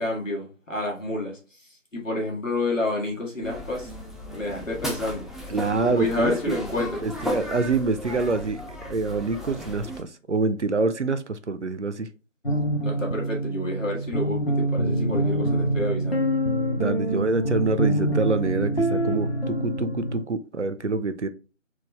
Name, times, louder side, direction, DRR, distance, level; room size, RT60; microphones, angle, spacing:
voice 1, 0.0-3.9 4.3-5.3 5.8-7.1 12.8-16.3, left 2 dB, 75° left, -2 dB, 1.8 m, -29 dB
sound 1, 3.4-10.0, equal, ahead, 0.5 m, -35 dB
voice 2, 5.5-6.6 7.0-8.6 8.9-12.1 16.8-21.3, right 3 dB, 65° right, 11 dB, 0.5 m, -26 dB
sound 2, 12.4-20.2, right 1 dB, 50° left, 0.7 m, -25 dB
4.6 x 2.3 x 3.3 m, 0.34 s
figure-of-eight pair, 175°, 39 cm